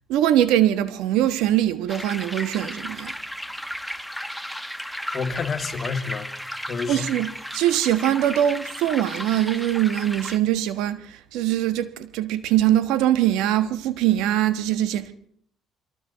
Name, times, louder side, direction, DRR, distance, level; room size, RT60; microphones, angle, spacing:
voice 1, 0.1-3.1 6.9-15.1, right 12 dB, 80° right, 1.3 m, -22 dB
sound 1, 1.9-10.4, equal, ahead, 1.2 m, -34 dB
voice 2, 5.1-6.3 6.7-7.1, left 5 dB, 40° left, 2.1 m, -28 dB
29.0 x 23.0 x 4.1 m
supercardioid pair, 75°, 0 cm